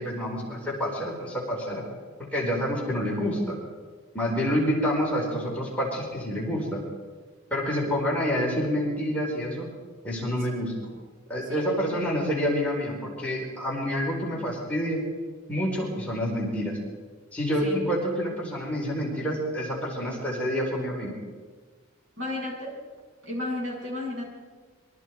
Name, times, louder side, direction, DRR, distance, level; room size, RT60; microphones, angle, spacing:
voice 1, 0.0-1.8 2.3-3.6 4.1-6.8 7.5-9.7 10.0-10.7 11.3-15.0 15.5-16.8 17.3-21.1, equal, 5° left, -4 dB, 4.6 m, -28 dB
voice 2, 11.4-11.7 17.6-17.8 22.2-22.8 23.2-24.2, left 1 dB, 55° right, -3 dB, 7.7 m, -33 dB
26.5 x 23.5 x 4.8 m, 1.5 s
head